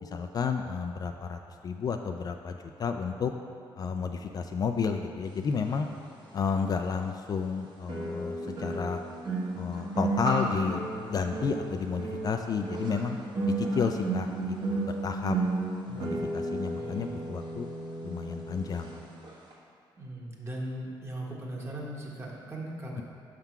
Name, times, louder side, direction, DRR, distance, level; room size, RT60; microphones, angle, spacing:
voice 1, 0.0-3.3 3.8-5.9 6.3-9.0 9.5-10.8 11.1-13.2 13.6-15.4 16.0-17.7 18.0-18.9, left 6 dB, 45° left, 5 dB, 0.3 m, -31 dB
sound 1, 6.5-6.6 7.9-19.0 19.2-19.5, right 2 dB, 55° right, 1.4 m, -33 dB
voice 2, 15.9-16.2 16.7-17.2 20.0-23.0, right 1 dB, 25° right, -3 dB, 1.3 m, -39 dB
5.5 x 3.7 x 5.9 m, 2.3 s
cardioid pair, 85°, 9 cm